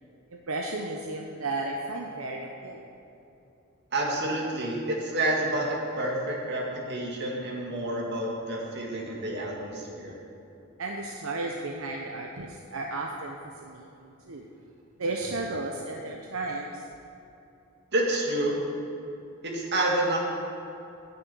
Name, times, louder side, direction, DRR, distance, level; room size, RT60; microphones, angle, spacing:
voice 1, 0.3-2.9 10.8-13.4 13.6-14.4 15.0-16.9, right 2 dB, 80° right, 1 dB, 0.9 m, -34 dB
voice 2, 3.9-10.2 17.9-18.6 19.4-20.2, right 1 dB, 55° right, -1 dB, 2.2 m, -29 dB
9.7 x 7.0 x 9.1 m, 2.8 s
head